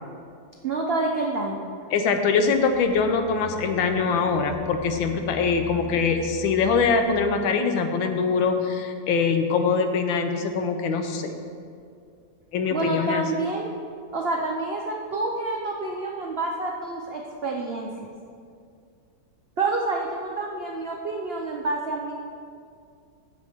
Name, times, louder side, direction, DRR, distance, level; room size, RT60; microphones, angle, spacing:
voice 1, 0.6-1.7 12.7-13.7 14.1-17.9 19.6-22.1, right 2 dB, 80° right, 0 dB, 0.5 m, -28 dB
voice 2, 1.9-11.3 12.5-13.2, left 5 dB, 90° left, 6 dB, 1.6 m, -23 dB
sound 1, 2.3-7.4, equal, 40° right, 1.7 m, -41 dB
15.5 x 6.6 x 3.5 m, 2.3 s
omnidirectional pair, 2.1 m